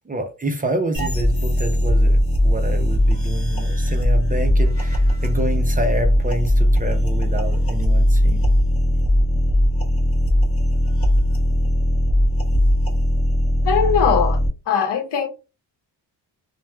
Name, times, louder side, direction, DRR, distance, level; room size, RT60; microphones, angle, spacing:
voice 1, 0.1-2.2 2.4-8.5, right 1 dB, 20° right, 0.4 m, -28 dB
sound 1, 0.9-14.5, equal, 30° left, 0.9 m, -19 dB
voice 2, 13.6-14.4 14.7-15.3, left 7 dB, 70° left, 0.8 m, -20 dB
2.9 x 2.1 x 2.2 m
cardioid pair, 90°, 43 cm